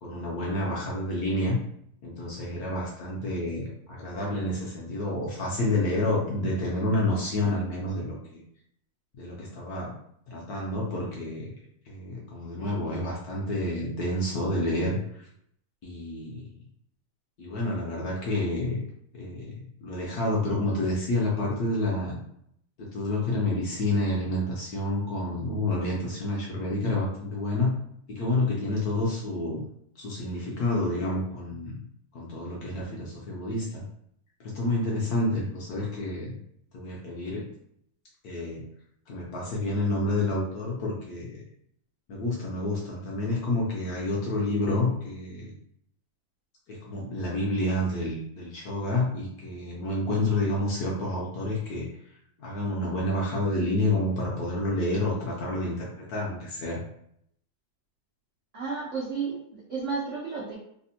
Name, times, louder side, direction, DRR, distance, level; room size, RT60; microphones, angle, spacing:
voice 1, 0.0-1.6 2.0-8.4 9.2-9.9 10.3-11.5 11.9-15.3 15.8-16.6 17.4-18.8 19.1-22.2 22.8-27.7 28.1-29.7 30.0-31.7 32.1-33.8 34.4-36.3 36.7-37.5 38.2-38.6 39.1-41.4 42.1-45.5 46.7-51.9 52.4-56.8, left 1 dB, 70° left, -4 dB, 0.9 m, -29 dB
voice 2, 58.5-60.5, right 5 dB, 90° right, -5 dB, 0.6 m, -32 dB
3.3 x 2.1 x 2.7 m, 0.71 s
omnidirectional pair, 2.1 m